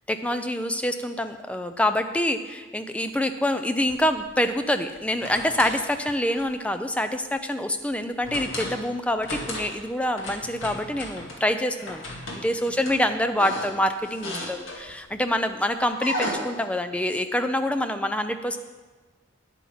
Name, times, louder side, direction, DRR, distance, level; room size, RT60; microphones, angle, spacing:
voice 1, 0.1-12.0 12.3-18.6, left 1 dB, 5° left, 8 dB, 0.5 m, -26 dB
sound 1, 3.8-4.3 4.9-5.8 6.3-6.6 8.2-8.8 9.2-9.8 10.2-11.4 11.8-15.1 15.9-16.3, left 1 dB, 80° left, 2.2 m, -35 dB
9.7 x 8.6 x 5.8 m, 1.3 s
head